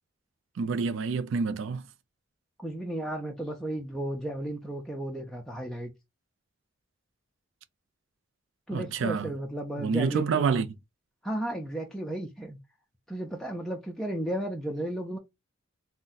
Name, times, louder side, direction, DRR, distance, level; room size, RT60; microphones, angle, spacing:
voice 1, 0.6-1.8 8.7-9.3 9.8-10.7, right 5 dB, 65° right, 0.4 m, -28 dB
voice 2, 2.6-5.9 8.7-10.6 11.2-12.6 13.1-15.2, right 1 dB, ahead, 0.4 m, -34 dB
2.6 x 2.1 x 3.8 m
head